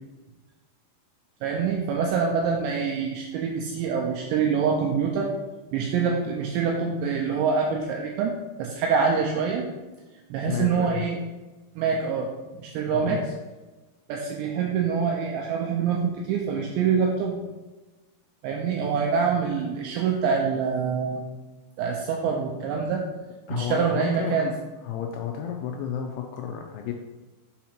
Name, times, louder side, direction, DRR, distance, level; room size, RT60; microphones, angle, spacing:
voice 1, 1.4-5.3 5.7-9.7 10.3-11.2 11.8-13.2 14.1-17.4 18.4-21.2 21.8-23.0 23.5-24.5, right 6 dB, 85° right, 0 dB, 2.6 m, -25 dB
voice 2, 10.5-11.1 12.9-13.3 23.5-24.4 24.8-26.9, left 8 dB, 85° left, 2 dB, 2.7 m, -32 dB
7.1 x 2.8 x 5.8 m, 1.2 s
omnidirectional pair, 5.7 m